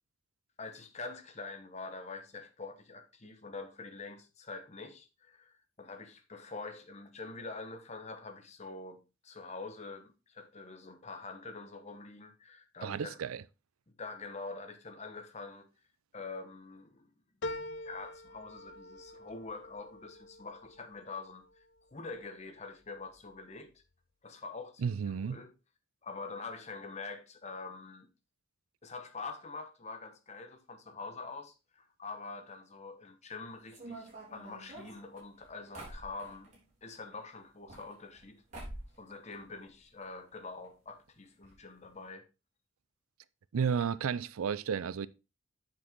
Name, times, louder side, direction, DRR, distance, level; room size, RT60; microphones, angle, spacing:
voice 1, 0.6-13.2 13.9-15.7 16.1-17.1 17.8-21.6 21.9-23.7 24.2-25.5 26.0-28.1 28.8-36.5 36.8-38.4 39.0-42.2 43.7-43.8, left 3 dB, 30° left, 1.0 m, -45 dB
voice 2, 12.8-13.4 24.8-25.4 43.5-45.1, right 6 dB, 85° right, 0.4 m, -32 dB
sound 1, 17.4-22.2 22.7-23.4 23.7-23.8, left 1 dB, 60° left, 0.7 m, -45 dB
sound 2, 33.7-36.6 37.5-38.3 38.5-39.0 39.3-40.1 40.3-40.4 40.6-40.7 41.4-41.5 41.8-42.0, right 1 dB, 35° right, 3.7 m, -47 dB
7.8 x 6.1 x 3.6 m
head